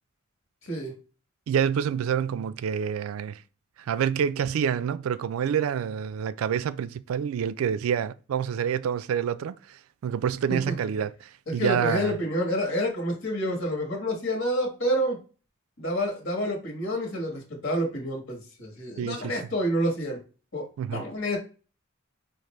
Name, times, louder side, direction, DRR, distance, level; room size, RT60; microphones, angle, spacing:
voice 1, 1.5-3.4 3.8-12.2 19.0-19.3 20.8-21.0, right 8 dB, 85° right, 0.3 m, -27 dB
voice 2, 11.5-15.2 15.8-20.2 20.5-21.4, equal, 65° left, 1.4 m, -28 dB
5.0 x 2.5 x 3.1 m
head